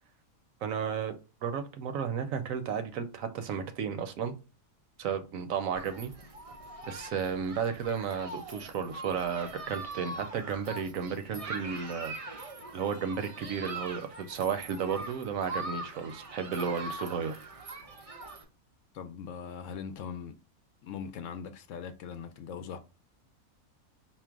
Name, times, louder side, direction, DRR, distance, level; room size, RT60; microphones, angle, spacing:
voice 1, 0.6-1.1 1.4-4.3 5.0-6.1 6.9-12.2 12.7-17.4, right 7 dB, 75° right, 1.0 m, -33 dB
Human group actions, 5.8-18.4, right 2 dB, 60° right, 0.3 m, -42 dB
voice 2, 18.9-20.4 20.8-22.8, left 7 dB, 70° left, 0.8 m, -40 dB
4.5 x 2.1 x 3.6 m
omnidirectional pair, 1.5 m